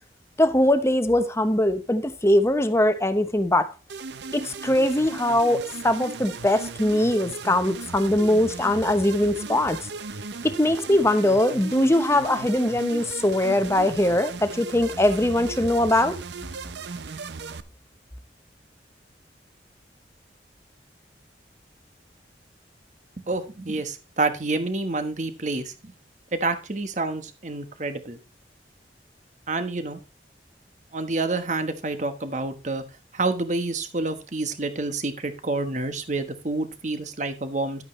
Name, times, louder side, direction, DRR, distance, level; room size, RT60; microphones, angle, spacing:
voice 1, 0.4-3.7 4.3-9.8 10.4-16.1, left 1 dB, 15° left, 0.8 m, -21 dB
sound 1, 3.9-17.6, right 4 dB, 75° right, 0.7 m, -37 dB
voice 2, 23.3-25.7 26.3-28.2 29.5-30.0 30.9-32.8 33.1-37.8, right 3 dB, 45° right, 1.2 m, -28 dB
11.5 x 8.5 x 3.2 m
head